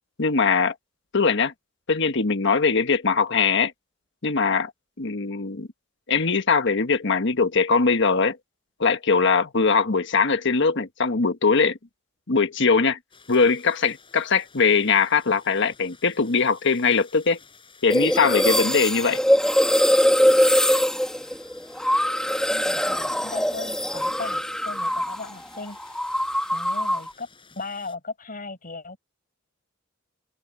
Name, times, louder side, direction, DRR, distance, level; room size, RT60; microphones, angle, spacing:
voice 1, 0.2-0.7 1.1-1.5 1.9-3.7 4.2-4.7 5.0-5.7 6.1-8.4 8.8-11.8 12.3-13.0 13.3-17.4 17.8-19.2, left 5 dB, 60° left, 1.3 m, -21 dB
sound 1, 13.1-28.0, left 4 dB, 25° left, 7.7 m, -53 dB
sound 2, 17.9-25.3 25.6-27.1, equal, 5° left, 1.9 m, -22 dB
voice 2, 22.5-26.1 26.5-27.3 27.6-29.0, left 3 dB, 45° left, 5.7 m, -37 dB
open air
head